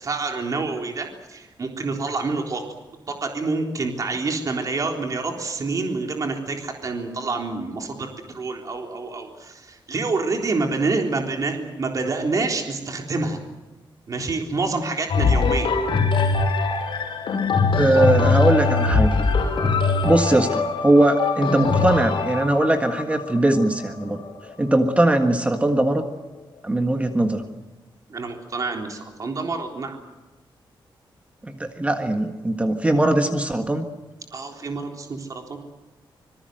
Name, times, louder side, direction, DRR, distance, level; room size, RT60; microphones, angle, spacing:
voice 1, 0.0-2.6 3.1-13.4 14.1-15.7 28.1-30.0 34.3-35.6, right 3 dB, 40° right, 3 dB, 3.7 m, -27 dB
sound 1, 15.1-24.9 25.5-25.6, left 4 dB, 70° left, 6.1 m, -22 dB
voice 2, 17.8-19.1 20.0-24.2 24.6-26.1 26.6-27.4 31.4-33.9, right 1 dB, 15° right, 5 dB, 1.6 m, -20 dB
26.0 x 22.5 x 7.9 m, 1.2 s
wide cardioid pair, 165°, 9 cm